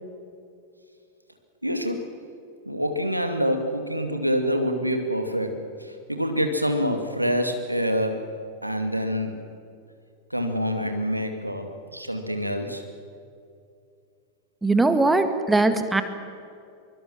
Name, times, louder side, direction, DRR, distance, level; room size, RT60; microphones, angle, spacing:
voice 1, 1.6-2.1 2.7-8.3 8.6-9.4 10.3-12.8, equal, 90° right, 6 dB, 2.4 m, -26 dB
voice 2, 14.6-16.0, right 2 dB, 10° right, 9 dB, 1.8 m, -20 dB
24.0 x 24.0 x 7.4 m, 2.4 s
figure-of-eight pair, 90°, 0 cm